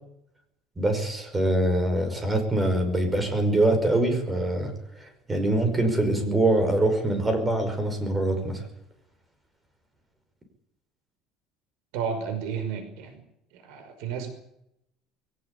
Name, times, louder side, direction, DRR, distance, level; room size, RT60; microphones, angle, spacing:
voice 1, 0.8-4.7 5.0-8.6, right 1 dB, 10° right, 7 dB, 5.4 m, -24 dB
voice 2, 11.9-13.2 13.5-14.3, right 6 dB, 75° right, 8 dB, 5.5 m, -32 dB
22.0 x 18.5 x 8.5 m, 0.79 s
cardioid pair, 170°, 0 cm